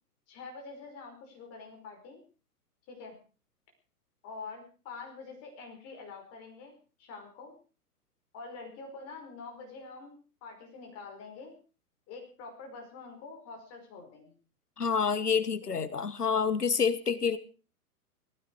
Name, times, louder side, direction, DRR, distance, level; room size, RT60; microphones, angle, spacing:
voice 1, 0.3-2.2 2.9-3.2 4.2-6.7 7.0-7.5 8.3-11.5 12.1-14.3 15.7-15.8, left 4 dB, 35° left, 3 dB, 5.4 m, -46 dB
voice 2, 14.8-17.4, left 6 dB, 85° left, 13 dB, 1.4 m, -28 dB
19.0 x 16.0 x 4.8 m, 0.38 s
figure-of-eight pair, 110°, 46 cm